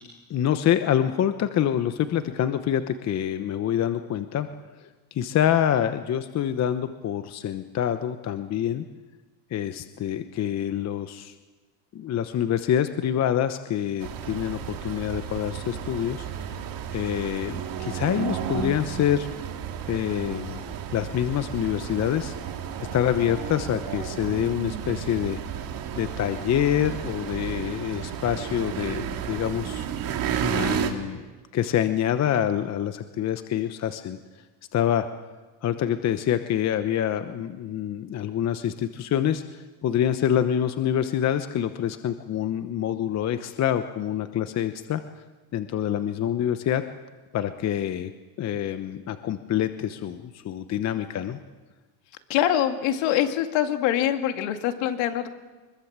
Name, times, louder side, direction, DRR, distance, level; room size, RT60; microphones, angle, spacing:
voice 1, 0.3-4.5 4.8-8.8 9.5-11.3 11.9-16.3 16.9-19.3 19.9-22.3 22.9-25.4 26.0-29.9 30.4-34.2 34.7-35.1 35.6-45.0 45.5-46.8 47.3-48.1 48.4-51.4, left 10 dB, 35° left, 10 dB, 1.0 m, -26 dB
sound 1, 14.0-30.9, right 9 dB, 45° right, 2.8 m, -32 dB
voice 2, 52.3-55.3, left 11 dB, 65° left, 6 dB, 2.4 m, -24 dB
24.5 x 22.0 x 7.5 m, 1.3 s
supercardioid pair, 130°, 48 cm